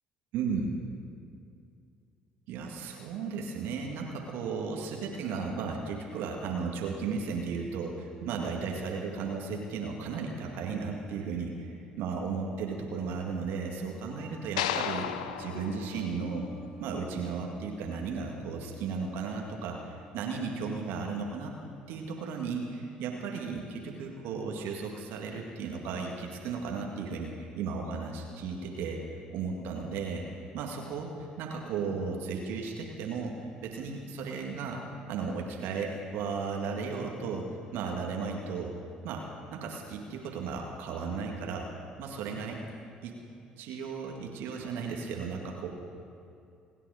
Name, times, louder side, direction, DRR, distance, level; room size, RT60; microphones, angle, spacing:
voice 1, 0.3-0.7 2.5-16.5 16.8-21.5 21.9-29.0 29.3-30.3 30.5-34.8 35.1-38.7 39.0-41.7 42.0-42.6 43.0-43.2 43.6-45.7, right 5 dB, 65° right, 1 dB, 2.0 m, -35 dB
sound 1, 14.1-23.6 24.0-24.6, right 1 dB, 20° left, 3.7 m, -53 dB
sound 2, 14.6-16.9, left 10 dB, 75° left, 0.6 m, -35 dB
28.5 x 9.9 x 5.0 m, 2.5 s
figure-of-eight pair, 50°, 4 cm